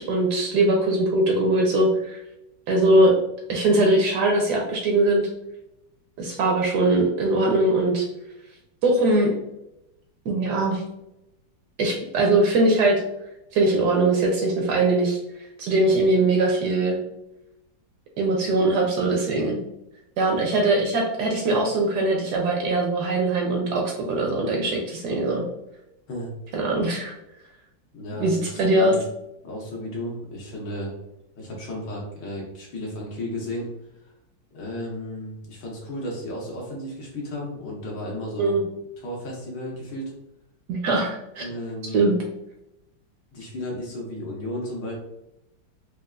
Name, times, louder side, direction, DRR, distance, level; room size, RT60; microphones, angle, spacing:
voice 1, 0.0-2.2 2.7-3.1 3.5-5.3 6.2-8.1 8.8-9.4 10.3-10.8 11.8-13.0 13.5-15.2 15.6-17.0 18.2-19.6 20.2-25.5 26.5-27.1 28.2-28.9 38.4-38.6 40.7-41.4 41.9-42.2, right 2 dB, 75° right, 0 dB, 1.0 m, -21 dB
voice 2, 27.9-29.0 29.4-30.9 31.4-33.7 34.5-38.6 39.0-40.1 41.4-42.1 43.3-44.9, left 1 dB, 75° left, -2 dB, 1.7 m, -33 dB
4.5 x 2.3 x 2.3 m, 0.87 s
omnidirectional pair, 2.1 m